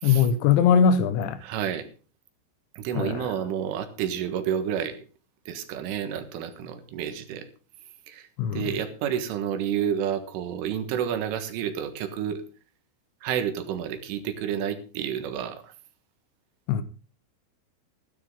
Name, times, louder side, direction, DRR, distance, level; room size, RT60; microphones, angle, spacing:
voice 1, 0.0-1.4 2.9-3.1 8.4-8.7 16.7-16.8, left 7 dB, 75° left, 3.2 m, -21 dB
voice 2, 1.4-1.9 2.8-5.0 5.5-7.5 8.1-12.4 13.2-15.7, right 9 dB, 80° right, 4.1 m, -30 dB
15.5 x 13.0 x 3.7 m
omnidirectional pair, 5.6 m